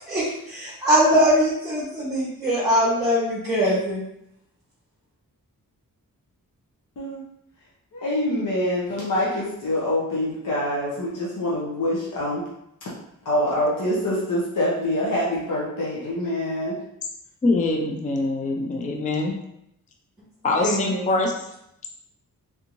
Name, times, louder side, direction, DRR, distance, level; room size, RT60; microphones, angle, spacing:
voice 1, 0.1-4.0 20.6-21.3, equal, 10° right, -9 dB, 0.9 m, -22 dB
voice 2, 7.9-12.4 13.2-16.8, left 1 dB, 60° left, -7 dB, 0.8 m, -25 dB
voice 3, 17.4-19.4 20.4-21.3, left 2 dB, 25° left, 2 dB, 0.3 m, -23 dB
3.4 x 2.6 x 2.9 m, 0.77 s
wide cardioid pair, 175°, 35 cm